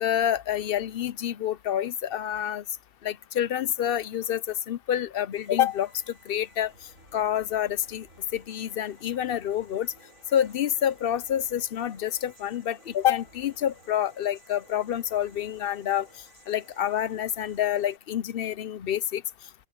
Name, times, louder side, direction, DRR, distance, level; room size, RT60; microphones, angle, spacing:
voice 1, 0.0-2.6 3.0-6.7 7.1-8.1 8.3-9.9 10.3-16.1 16.5-19.2, left 10 dB, 55° left, 0.7 m, -28 dB
sound 1, 5.3-18.0, right 2 dB, 75° right, 8.3 m, -56 dB
open air
omnidirectional pair, 1.4 m